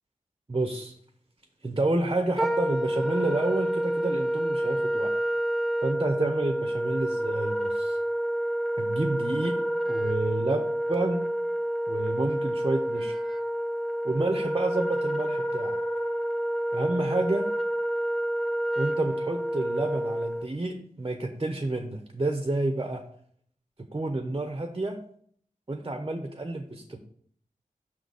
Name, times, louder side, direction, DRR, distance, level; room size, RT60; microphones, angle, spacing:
voice 1, 0.5-1.0 1.6-5.1 5.8-8.0 8.8-9.5 9.8-11.2 11.9-13.2 14.0-15.8 16.7-17.4 18.8-23.0 23.9-25.0 25.7-27.0, right 2 dB, 30° right, 4 dB, 0.8 m, -29 dB
Wind instrument woodwind instrument, 2.4-20.5, right 1 dB, ahead, 0.5 m, -28 dB
6.2 x 4.0 x 6.3 m, 0.62 s
wide cardioid pair, 55°, 14 cm